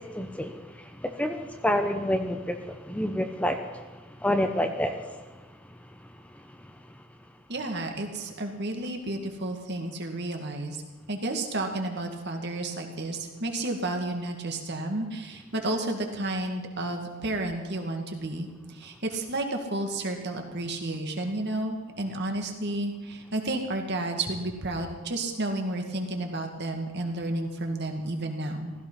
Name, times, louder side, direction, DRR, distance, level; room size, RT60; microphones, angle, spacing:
voice 1, 0.0-3.8 4.2-5.0, left 1 dB, 5° left, 6 dB, 0.8 m, -28 dB
voice 2, 7.5-10.8 11.1-28.7, right 2 dB, 55° right, 3 dB, 2.1 m, -31 dB
15.5 x 15.5 x 5.6 m, 1.3 s
head